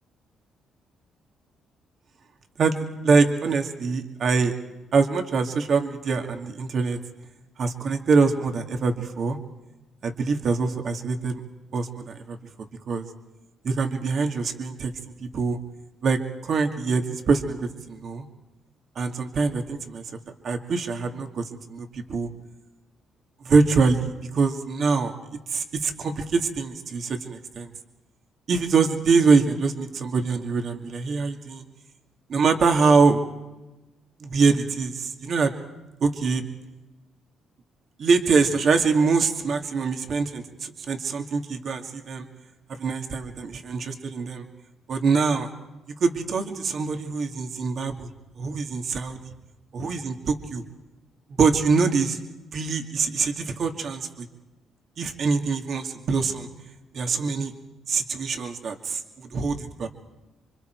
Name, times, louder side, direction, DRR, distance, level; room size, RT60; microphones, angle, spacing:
voice 1, 3.0-4.5 4.9-7.0 7.6-9.4 10.0-11.4 11.7-12.4 12.9-13.1 13.6-14.9 15.2-15.6 16.0-18.2 19.0-20.0 20.4-22.3 23.4-25.1 25.5-27.7 28.5-31.6 32.3-33.2 34.2-35.5 36.0-36.4 38.0-42.3 42.7-44.4 44.9-45.5 46.0-48.1 48.4-49.2 49.7-50.6 51.4-52.2 52.5-54.3 55.0-56.5 56.9-57.5 57.9-59.9, right 4 dB, 55° right, 4 dB, 2.4 m, -24 dB
27.5 x 25.0 x 4.7 m, 1.1 s
cardioid pair, 90°, 0 cm